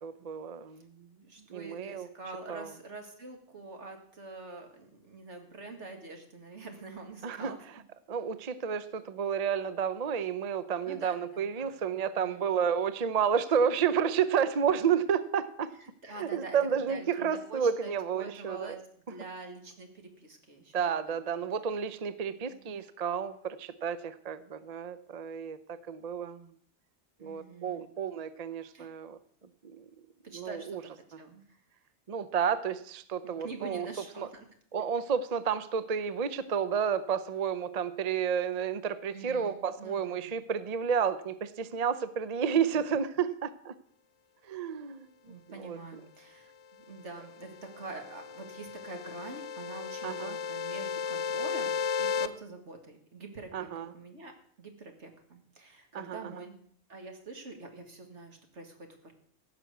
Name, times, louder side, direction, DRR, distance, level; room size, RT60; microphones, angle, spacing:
voice 1, 0.0-1.1 1.5-2.1 2.5-2.7 7.2-7.5 8.1-15.7 16.2-18.8 20.7-26.5 27.2-29.2 29.6-29.9 30.3-30.8 31.1-31.2 32.1-33.9 34.2-34.3 34.7-43.7 44.4-46.0 50.0-50.4 53.5-53.9 55.9-56.3, right 7 dB, 40° right, 14 dB, 0.6 m, -31 dB
voice 2, 1.2-7.6 10.9-11.2 11.6-11.7 12.2-12.4 16.0-16.6 16.9-18.8 19.1-20.7 21.1-21.2 22.3-22.6 27.2-27.8 28.7-28.9 30.2-31.4 33.2-34.5 39.1-40.3 45.3-54.3 54.6-56.6 56.9-59.1, right 3 dB, 75° right, 4 dB, 2.3 m, -45 dB
sound 1, 47.3-52.3, left 6 dB, 85° left, 1.1 m, -34 dB
15.5 x 6.0 x 8.0 m, 0.62 s
omnidirectional pair, 1.2 m